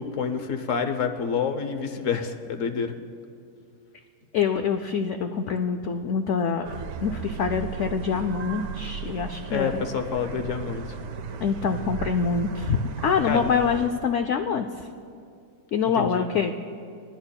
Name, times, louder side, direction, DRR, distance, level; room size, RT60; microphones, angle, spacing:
voice 1, 0.0-2.9 9.5-10.8 13.2-13.4 15.9-16.3, left 6 dB, 60° left, 7 dB, 0.9 m, -28 dB
voice 2, 4.3-6.7 7.0-9.8 11.4-12.8 13.0-14.7 15.7-16.5, left 6 dB, 90° left, 7 dB, 0.6 m, -25 dB
sound 1, 6.6-13.9, right 5 dB, 65° right, 1.1 m, -35 dB
29.5 x 11.5 x 2.2 m, 2.4 s
omnidirectional pair, 1.8 m